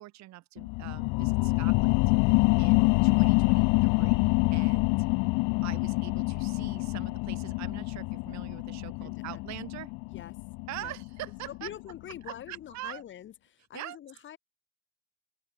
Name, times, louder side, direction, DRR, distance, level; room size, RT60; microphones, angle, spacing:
voice 1, 0.0-5.0 5.6-9.9 10.7-11.7 12.3-13.0 13.7-14.0, right 16 dB, 50° right, 3.3 m, -44 dB
sound 1, 0.6-11.7 12.2-12.3, left 29 dB, 55° left, 0.5 m, -26 dB
voice 2, 8.9-9.4 10.1-10.4 10.8-10.9 11.5-14.4, left 11 dB, 35° left, 1.5 m, -45 dB
open air
cardioid pair, 150°, 35 cm